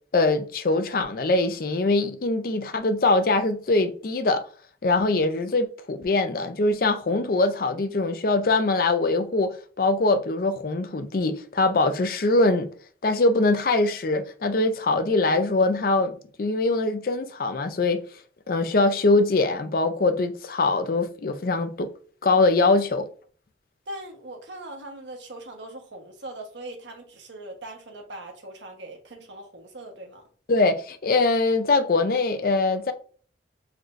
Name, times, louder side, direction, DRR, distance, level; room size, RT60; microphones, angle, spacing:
voice 1, 0.1-4.4 4.8-12.7 13.0-18.0 18.5-21.9 22.2-23.1 30.5-32.9, left 3 dB, 50° left, 0.5 m, -22 dB
voice 2, 23.9-30.2, right 1 dB, 75° right, 1.0 m, -40 dB
4.2 x 3.1 x 2.5 m
head